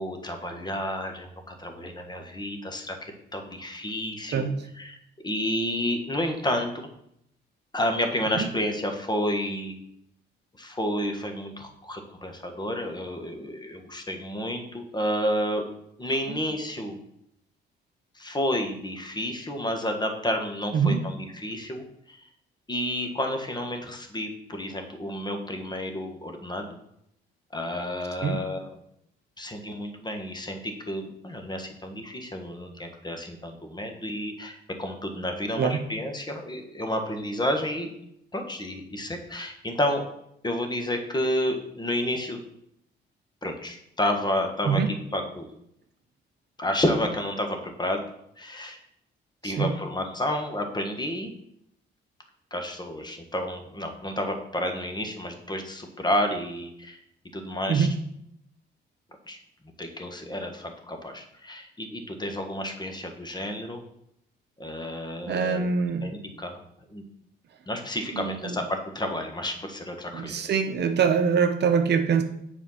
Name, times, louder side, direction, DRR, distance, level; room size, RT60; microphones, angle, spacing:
voice 1, 0.0-5.0 5.2-6.9 7.7-9.8 10.6-15.6 16.0-17.0 18.1-22.3 22.7-26.7 27.5-28.7 29.4-37.9 38.3-40.0 40.4-42.4 43.4-44.8 45.1-45.5 46.6-48.0 48.4-48.8 49.4-51.3 52.5-57.0 57.3-57.9 59.3-59.4 59.8-63.8 64.6-65.6 66.0-66.6 66.9-67.0 67.7-70.4, left 1 dB, 20° left, 4 dB, 1.4 m, -30 dB
voice 2, 4.3-4.7 8.4-8.5 16.3-16.4 20.7-21.0 28.2-28.4 35.6-35.8 44.6-44.9 49.4-49.7 57.7-57.9 65.3-66.1 68.1-68.6 70.1-72.2, right 6 dB, 60° right, 7 dB, 0.8 m, -24 dB
7.3 x 4.4 x 5.7 m, 0.76 s
cardioid pair, 90°, 20 cm